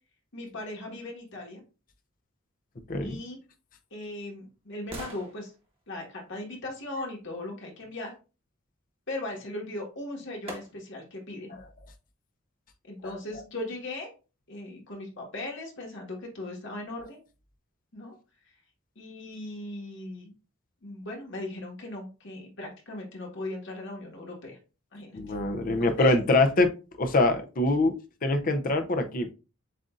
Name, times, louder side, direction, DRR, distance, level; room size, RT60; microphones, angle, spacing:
voice 1, 0.3-1.6 3.0-3.4 3.9-5.5 5.9-8.1 9.1-11.6 12.8-14.1 14.5-17.2 17.9-18.1 18.9-20.3 20.8-24.6 24.9-25.3 25.8-26.2, left 2 dB, 60° left, 0 dB, 1.5 m, -38 dB
sound 1, 3.5-7.5 9.6-9.7 10.5-11.2 11.6-11.7, right 1 dB, 25° right, 1.2 m, -47 dB
voice 2, 25.1-26.7 27.0-29.3, left 2 dB, 40° left, 6 dB, 0.6 m, -24 dB
7.5 x 2.6 x 2.4 m, 0.32 s
head